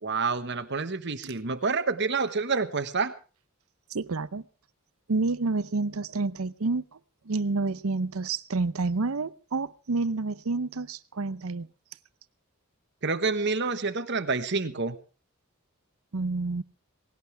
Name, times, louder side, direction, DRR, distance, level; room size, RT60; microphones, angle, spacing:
voice 1, 0.0-3.1 13.0-14.9, right 4 dB, 55° right, 1.3 m, -28 dB
voice 2, 3.9-4.4 5.1-6.8 7.3-11.7 16.1-16.6, right 3 dB, 75° right, 0.7 m, -29 dB
19.0 x 17.5 x 3.4 m
head